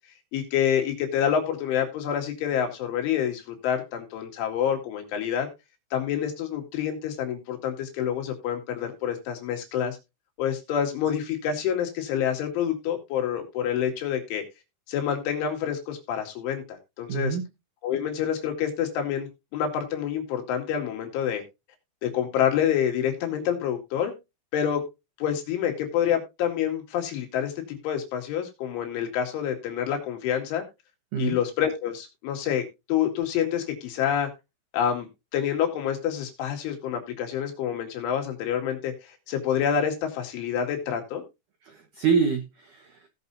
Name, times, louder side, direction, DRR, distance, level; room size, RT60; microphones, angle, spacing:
voice 1, 0.3-5.5 5.9-10.0 10.4-14.4 14.9-17.4 17.8-21.4 22.0-24.1 24.5-24.8 25.2-30.6 31.2-32.6 32.9-34.3 34.7-35.1 35.3-38.9 39.3-41.2, left 9 dB, 80° left, 3 dB, 4.7 m, -27 dB
voice 2, 17.1-17.5 31.1-31.4 41.7-43.1, right 6 dB, 75° right, 5 dB, 1.8 m, -26 dB
18.0 x 6.8 x 2.7 m, 0.25 s
omnidirectional pair, 5.5 m